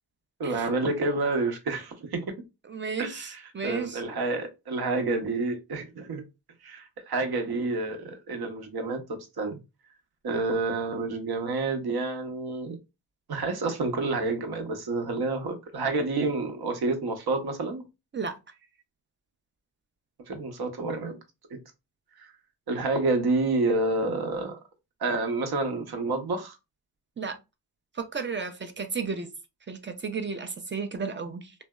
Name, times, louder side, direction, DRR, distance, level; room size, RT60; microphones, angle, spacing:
voice 1, 0.4-2.3 3.0-6.2 6.6-9.6 10.2-12.8 13.3-17.8 20.3-21.2 22.2-22.3 22.7-24.6 25.0-26.5, right 3 dB, 60° right, 0.8 m, -29 dB
voice 2, 2.7-4.0 18.1-18.4 27.2-27.4 28.0-29.3 29.7-31.5, right 5 dB, 30° right, 0.5 m, -33 dB
2.6 x 2.1 x 2.2 m
supercardioid pair, 50°, 42 cm